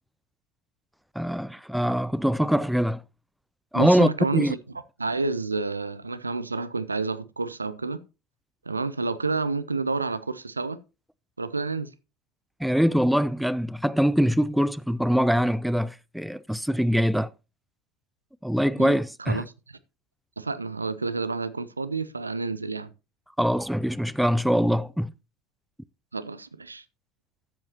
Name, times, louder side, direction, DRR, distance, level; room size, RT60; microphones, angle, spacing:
voice 1, 1.2-3.0 3.7-4.5 12.6-17.3 18.4-19.4 23.4-25.1, equal, ahead, 0.4 m, -23 dB
voice 2, 3.7-4.6 5.0-8.0 8.7-10.8 11.4-11.9 18.8-19.8 20.4-22.9 26.1-26.8, right 3 dB, 85° right, 0.5 m, -29 dB
14.0 x 7.7 x 2.9 m
figure-of-eight pair, 70°, 0 cm